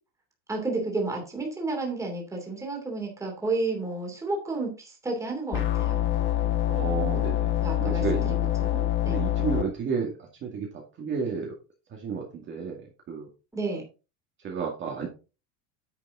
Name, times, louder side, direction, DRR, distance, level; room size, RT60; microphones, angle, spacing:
voice 1, 0.5-6.0 7.6-9.2 13.5-13.8, right 3 dB, 5° right, 0 dB, 2.8 m, -31 dB
sound 1, 5.5-9.6, left 12 dB, 25° left, 1.2 m, -25 dB
voice 2, 6.7-7.5 7.8-8.4 9.1-11.5 11.9-13.3 14.4-15.1, right 5 dB, 25° right, -1 dB, 2.1 m, -32 dB
9.9 x 6.8 x 3.8 m, 0.32 s
cardioid pair, 170°, 41 cm